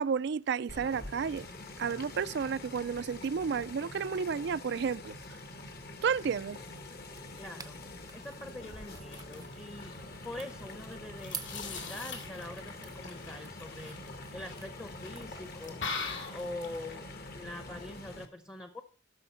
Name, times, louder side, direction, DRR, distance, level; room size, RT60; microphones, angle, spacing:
voice 1, 0.0-1.5 1.8-5.1 6.0-6.6, right 6 dB, 60° right, 0.4 m, -31 dB
sound 1, 0.7-18.3, left 2 dB, 55° left, 1.3 m, -46 dB
sound 2, 6.8-15.8, right 7 dB, 20° right, 0.6 m, -51 dB
voice 2, 7.4-7.8 8.1-9.9 10.2-14.0 14.3-15.8 16.3-17.1 17.3-18.8, left 1 dB, 15° left, 0.7 m, -44 dB
sound 3, 8.5-17.0, left 4 dB, 75° left, 2.5 m, -43 dB
14.5 x 6.4 x 4.4 m
head